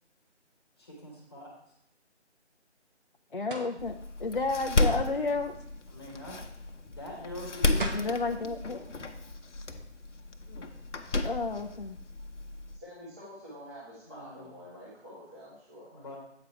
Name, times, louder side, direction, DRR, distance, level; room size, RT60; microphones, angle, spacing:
voice 1, 0.8-1.5 4.8-5.0 5.9-6.4 6.8-8.9 10.5-10.8 14.0-14.5 15.9-16.2, left 1 dB, 20° left, -3 dB, 1.3 m, -44 dB
voice 2, 3.3-5.5 7.9-8.8 11.2-12.0, left 3 dB, 50° left, 4 dB, 0.4 m, -31 dB
sound 1, 3.5-3.8 7.5-7.6 7.8-8.2, right 2 dB, 45° right, 1.0 m, -36 dB
Door, 3.8-12.8, left 2 dB, 85° left, 0.9 m, -33 dB
voice 3, 12.8-16.1, equal, 15° right, -12 dB, 1.2 m, -48 dB
8.3 x 4.9 x 4.5 m, 0.75 s
figure-of-eight pair, 165°, 35 cm